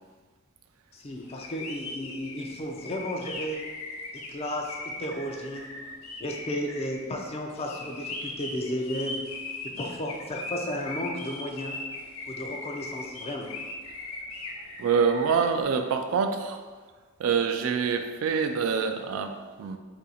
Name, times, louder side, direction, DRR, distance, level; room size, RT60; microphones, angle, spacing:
voice 1, 0.9-3.7 4.1-5.9 6.2-9.2 9.6-11.8 12.3-13.6, equal, 30° left, 2 dB, 0.4 m, -34 dB
sound 1, 1.2-15.5, left 2 dB, 80° left, 0.6 m, -39 dB
voice 2, 14.8-16.6 17.2-19.8, right 6 dB, 75° right, 8 dB, 0.3 m, -26 dB
2.7 x 2.5 x 4.1 m, 1.4 s
head